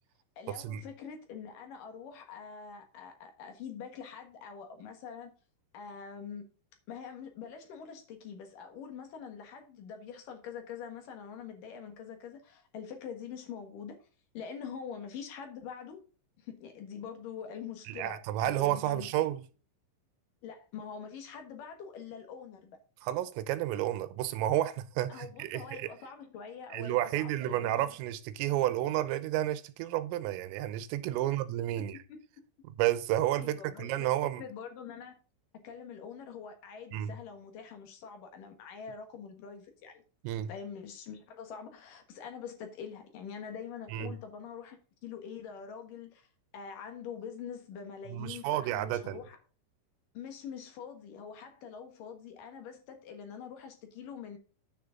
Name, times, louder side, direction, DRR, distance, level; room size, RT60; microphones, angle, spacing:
voice 1, 0.4-5.3 5.7-6.4 6.9-14.0 14.3-16.0 16.4-19.1 20.4-22.8 25.1-27.9 31.2-31.4 31.8-32.2 33.4-35.2 35.6-40.0 40.5-46.3 46.5-49.4 50.1-54.4, left 7 dB, 65° left, 2.2 m, -44 dB
voice 2, 17.9-19.4 23.0-25.9 26.7-32.0 32.7-34.4 36.9-37.2 40.2-40.5 43.9-44.1 48.1-49.2, right 13 dB, 85° right, 3.4 m, -31 dB
10.0 x 6.6 x 3.8 m
omnidirectional pair, 5.9 m